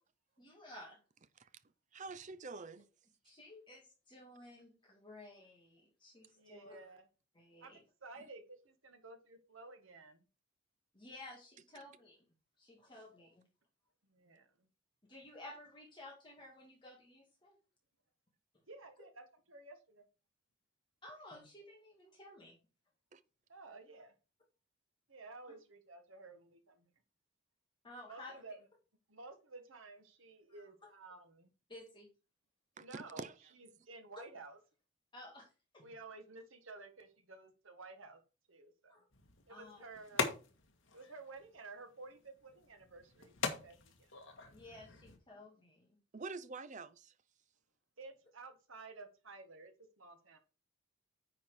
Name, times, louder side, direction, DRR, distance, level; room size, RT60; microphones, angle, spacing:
voice 1, 0.4-1.0 3.2-6.8 7.4-7.8 10.9-12.2 12.6-13.4 15.1-17.6 21.0-22.6 27.8-28.4 30.6-30.9 31.7-32.1 34.2-34.3 35.1-35.9 38.9-39.0 39.5-39.8 44.5-46.0, left 1 dB, 25° left, 2.1 m, -54 dB
voice 2, 1.9-2.9 23.1-23.2 32.8-33.3 46.1-47.1, right 3 dB, 35° right, 0.6 m, -46 dB
voice 3, 6.3-7.1 7.6-10.2 14.0-14.7 18.7-20.0 23.5-24.1 25.1-26.9 28.1-28.5 29.1-31.5 32.8-34.6 35.8-38.2 38.5-39.0 39.5-40.2 40.9-44.1 48.0-50.4, right 3 dB, 75° right, 1.6 m, -53 dB
sound 1, 39.1-45.2, left 4 dB, 70° left, 1.6 m, -43 dB
9.6 x 4.4 x 4.9 m
head